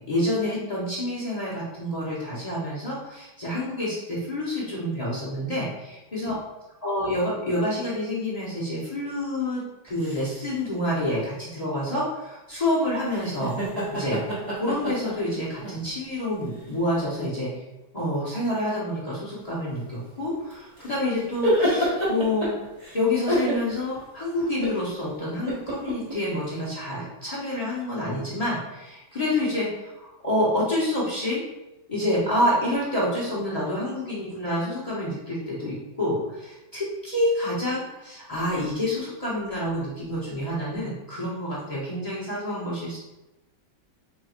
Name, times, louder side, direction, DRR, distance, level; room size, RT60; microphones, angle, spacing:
voice 1, 0.1-5.9 6.1-6.4 6.8-13.6 13.9-17.6 17.9-22.5 22.9-31.4 31.9-43.0, left 1 dB, 55° left, -7 dB, 0.4 m, -28 dB
sound 1, 9.9-10.5 13.1-15.9 16.6-16.7 20.5-23.0 23.3-24.0 24.4-24.9 25.5-26.1, equal, 25° right, 1.1 m, -27 dB
3.4 x 2.4 x 4.2 m, 0.98 s
omnidirectional pair, 2.1 m